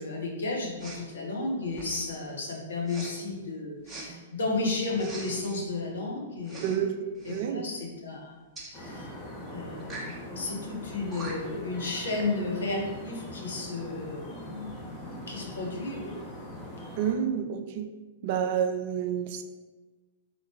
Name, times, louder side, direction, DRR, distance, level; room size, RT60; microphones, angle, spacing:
voice 1, 0.0-6.9 7.2-8.3 8.7-9.1 9.5-16.2, left 3 dB, 65° left, -1 dB, 1.0 m, -33 dB
Respiratory sounds, 0.8-1.1 1.7-2.1 2.9-3.1 3.9-4.1 4.9-5.6 6.4-6.8 7.1-7.4 8.6-8.7 9.8-10.2 10.8-10.9 11.1-11.6, right 2 dB, 15° right, 0.8 m, -42 dB
voice 2, 6.6-6.9 7.3-7.7 17.0-17.9 18.2-19.4, right 8 dB, 45° right, 7 dB, 0.4 m, -29 dB
sound 1, 8.7-17.1, equal, 20° left, 1.0 m, -42 dB
3.8 x 3.1 x 3.7 m, 1.3 s
figure-of-eight pair, 105°, 0 cm